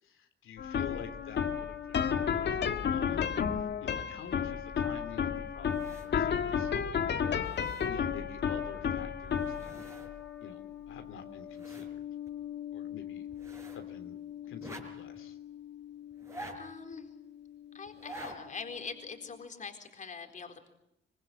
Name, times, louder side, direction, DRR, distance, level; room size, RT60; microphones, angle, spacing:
voice 1, 0.0-3.3 3.6-6.7 7.3-9.8 10.4-11.9 12.7-13.3 13.7-14.2 14.5-15.4, left 7 dB, 85° left, 6 dB, 3.3 m, -48 dB
sound 1, 0.6-17.8, left 7 dB, 55° left, 1.7 m, -34 dB
sound 2, 5.6-6.3 6.8-6.9 7.2-8.2 9.2-10.1 10.4-10.5 11.0-11.9 12.3-12.4 13.3-13.9 14.5-15.2 16.1-16.9 17.9-18.4 18.8-18.9, right 1 dB, 15° right, 5.2 m, -48 dB
voice 2, 16.5-17.1 17.7-20.7, left 5 dB, 40° left, 5 dB, 4.1 m, -43 dB
24.5 x 24.0 x 9.2 m, 0.78 s
wide cardioid pair, 160°, 20 cm